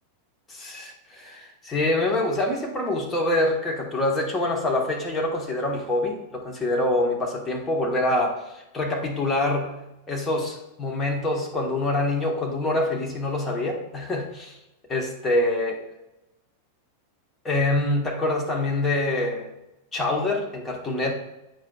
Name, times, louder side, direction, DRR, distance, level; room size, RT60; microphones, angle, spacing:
voice 1, 0.5-9.8 10.1-14.6 14.9-15.8 17.4-19.5 19.9-21.1, left 2 dB, 15° left, 0 dB, 1.4 m, -25 dB
9.2 x 4.9 x 2.4 m, 0.93 s
figure-of-eight pair, 90°, 0 cm